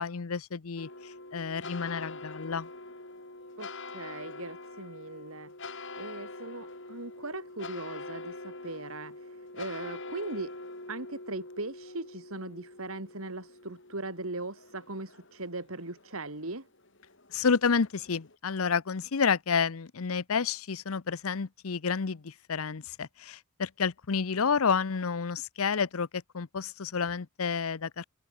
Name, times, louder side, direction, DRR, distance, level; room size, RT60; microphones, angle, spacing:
voice 1, 0.0-2.7 17.3-28.1, left 5 dB, 70° left, 0.7 m, -30 dB
sound 1, 0.8-18.3, left 2 dB, 55° left, 5.3 m, -45 dB
voice 2, 3.6-10.5 10.9-16.7, right 2 dB, 70° right, 3.4 m, -39 dB
open air
head